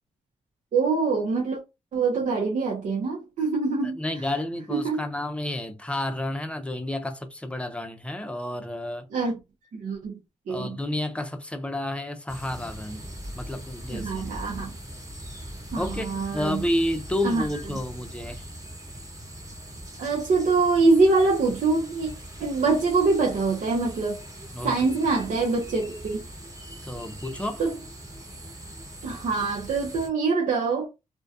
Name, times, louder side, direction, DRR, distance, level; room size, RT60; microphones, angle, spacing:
voice 1, 0.7-1.6 1.9-4.0 4.7-5.0 9.1-9.4 9.7-10.2 10.5-10.8 13.9-14.7 15.7-16.6 17.2-17.5 20.0-22.1 22.4-24.2 24.6-26.2 27.6-27.7 29.0-30.9, right 3 dB, 70° right, 0.7 m, -24 dB
voice 2, 3.8-9.1 10.5-13.0 13.4-14.2 15.8-18.4 24.5-24.7 26.8-27.6, left 1 dB, 10° left, 0.6 m, -30 dB
sound 1, 12.3-30.1, right 1 dB, 25° right, 1.1 m, -41 dB
2.2 x 2.2 x 2.6 m
cardioid pair, 55°, 14 cm